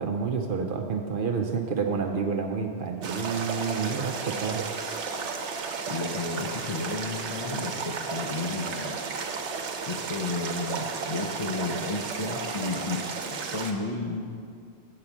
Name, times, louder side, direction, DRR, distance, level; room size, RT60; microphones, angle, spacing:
voice 1, 0.0-4.7, right 5 dB, 60° right, 3 dB, 0.7 m, -29 dB
sound 1, 3.0-13.7, right 5 dB, 85° right, 1.0 m, -33 dB
voice 2, 5.9-9.0 9.9-13.0 13.3-14.3, left 3 dB, 40° left, 0 dB, 0.6 m, -32 dB
7.9 x 4.9 x 7.1 m, 2.3 s
omnidirectional pair, 1.2 m